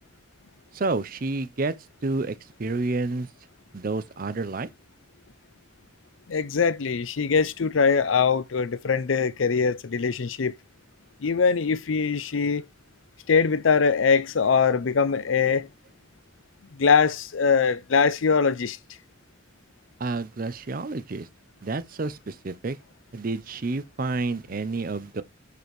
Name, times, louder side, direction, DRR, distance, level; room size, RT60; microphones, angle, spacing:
voice 1, 0.7-1.7 2.0-3.3 3.7-4.7 20.0-21.3 21.6-22.8 23.1-25.2, right 3 dB, 45° right, 0.6 m, -29 dB
voice 2, 6.3-10.5 11.2-12.6 13.3-15.7 16.8-18.8, left 5 dB, 80° left, 0.6 m, -22 dB
7.0 x 6.6 x 3.1 m
head